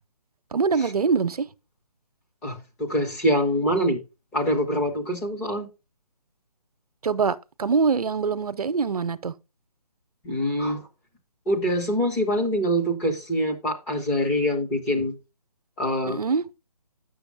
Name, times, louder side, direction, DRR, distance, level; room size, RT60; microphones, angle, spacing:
voice 1, 0.5-1.5 7.0-9.3 16.1-16.4, right 5 dB, 70° right, 0.7 m, -24 dB
voice 2, 2.4-4.0 4.3-5.7 10.2-10.9 11.5-15.1 15.8-16.2, equal, 5° left, 0.4 m, -24 dB
8.0 x 6.3 x 3.3 m
figure-of-eight pair, 150°, 20 cm